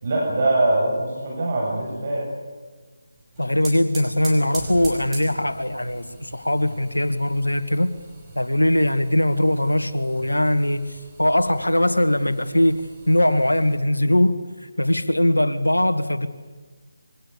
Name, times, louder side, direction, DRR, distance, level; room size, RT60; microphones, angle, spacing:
voice 1, 0.0-2.3, right 2 dB, 40° right, -3 dB, 7.1 m, -22 dB
sound 1, 3.2-13.8, right 2 dB, 10° right, 5.3 m, -42 dB
voice 2, 3.4-7.9 8.4-16.3, left 1 dB, 80° left, 10 dB, 2.1 m, -21 dB
26.5 x 24.0 x 7.0 m, 1.4 s
figure-of-eight pair, 155°, 0 cm